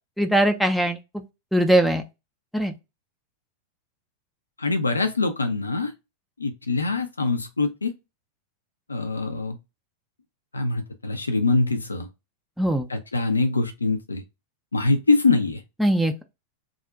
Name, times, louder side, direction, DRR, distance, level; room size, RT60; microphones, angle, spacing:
voice 1, 0.2-1.0 1.5-2.0 2.5-2.7 12.6-12.8 15.8-16.2, right 1 dB, ahead, 0.4 m, -20 dB
voice 2, 4.6-5.9 6.4-7.9 8.9-9.6 10.5-12.1 12.9-14.2 14.7-15.6, left 3 dB, 80° left, 0.3 m, -23 dB
2.4 x 2.0 x 3.6 m
figure-of-eight pair, 90°, 0 cm